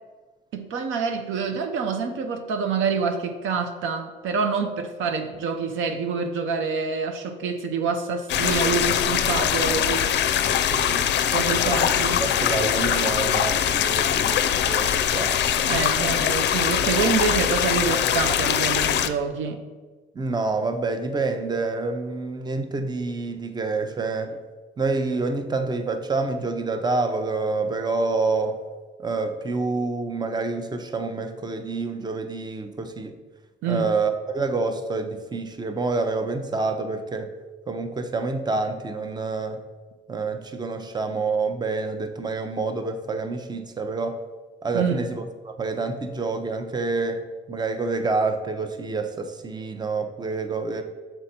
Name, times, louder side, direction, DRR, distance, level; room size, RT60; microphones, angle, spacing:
voice 1, 0.5-10.1 11.3-12.2 15.6-19.6 33.6-33.9 44.7-45.0, right 5 dB, 80° right, 6 dB, 0.7 m, -26 dB
sound 1, 8.3-19.1, left 9 dB, 60° left, 0.4 m, -22 dB
voice 2, 10.5-11.1 11.7-11.8 12.1-15.4 20.1-24.4 24.8-28.6 29.0-33.2 33.6-37.3 37.7-39.6 40.1-44.2 44.6-50.8, right 3 dB, 20° right, 7 dB, 0.6 m, -27 dB
6.6 x 4.4 x 4.3 m, 1.4 s
cardioid pair, 90°, 20 cm